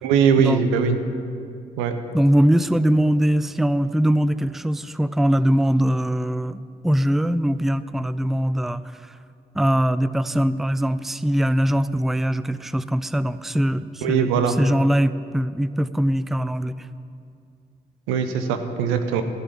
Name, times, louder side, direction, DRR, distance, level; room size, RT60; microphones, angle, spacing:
voice 1, 0.0-1.0 1.8-1.9 14.0-14.6 18.1-19.2, right 6 dB, 80° right, 8 dB, 0.9 m, -20 dB
voice 2, 2.1-9.1 9.5-16.9, equal, ahead, 15 dB, 0.4 m, -22 dB
16.0 x 6.8 x 7.8 m, 2.3 s
hypercardioid pair, 40°, 21 cm